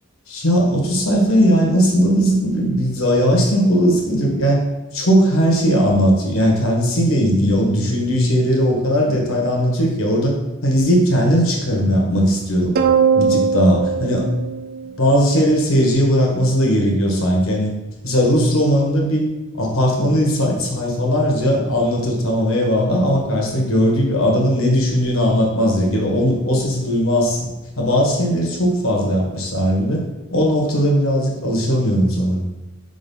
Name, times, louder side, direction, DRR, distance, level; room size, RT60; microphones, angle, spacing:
voice 1, 0.3-4.6 4.9-10.3 10.6-12.7 13.1-14.3 15.0-17.7 18.0-19.2 19.6-27.5 27.8-30.0 30.3-32.4, equal, 65° left, 0 dB, 1.5 m, -18 dB
sound 1, 12.8-15.4, right 6 dB, 45° right, 0.4 m, -19 dB
5.1 x 4.0 x 5.4 m, 1.1 s
head